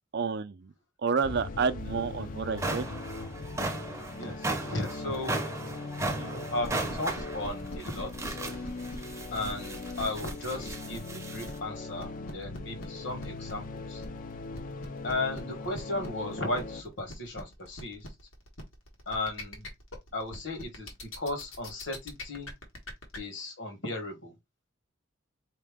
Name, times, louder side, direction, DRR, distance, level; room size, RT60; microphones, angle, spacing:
voice 1, 0.1-0.7 1.0-2.9, right 5 dB, 55° right, 0.5 m, -29 dB
sound 1, 1.2-16.8, left 3 dB, 45° left, 0.4 m, -40 dB
sound 2, 1.8-1.9 2.3-11.6, right 2 dB, 15° right, 0.6 m, -36 dB
voice 2, 4.2-5.7 6.2-8.4 9.3-14.0 15.0-18.1 19.1-19.7 20.1-22.5 23.2-24.3, left 2 dB, 65° left, 1.5 m, -36 dB
sound 3, 6.6-23.2, left 1 dB, 85° left, 1.4 m, -43 dB
4.2 x 2.9 x 3.6 m
head